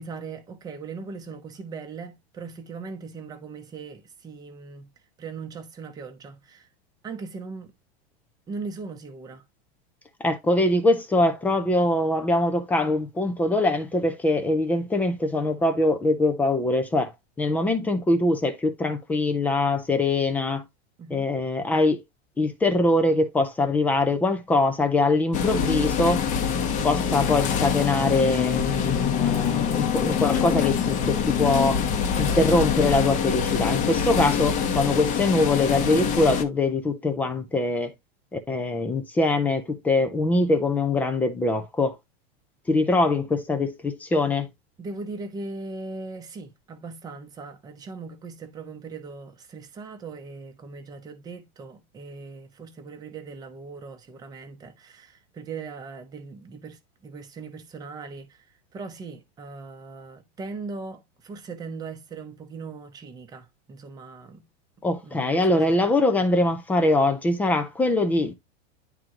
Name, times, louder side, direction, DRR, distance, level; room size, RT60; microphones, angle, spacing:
voice 1, 0.0-4.9 5.2-6.7 7.0-7.7 8.5-9.4 21.0-21.3 44.8-58.5 58.7-64.5 65.0-65.8, right 4 dB, 10° right, 0.8 m, -39 dB
voice 2, 10.2-17.1 17.4-20.6 21.1-22.0 22.4-26.2 26.8-31.8 32.2-37.9 38.3-42.0 42.7-44.5 64.8-68.3, left 2 dB, 5° left, 0.4 m, -23 dB
sound 1, 25.3-36.4, left 7 dB, 25° left, 0.9 m, -25 dB
10.5 x 3.8 x 2.8 m
supercardioid pair, 165°, 33 cm